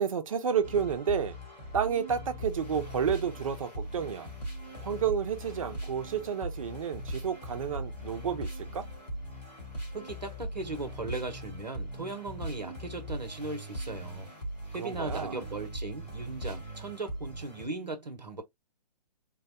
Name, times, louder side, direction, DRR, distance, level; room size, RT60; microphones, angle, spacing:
voice 1, 0.0-1.4 1.7-4.3 4.8-8.9 14.8-15.4, right 7 dB, 55° right, 0.7 m, -31 dB
sound 1, 0.6-17.7, equal, 85° left, 1.7 m, -40 dB
voice 2, 9.9-14.3 14.7-18.4, right 3 dB, 85° right, 0.8 m, -38 dB
3.9 x 2.1 x 2.5 m
figure-of-eight pair, 125°, 21 cm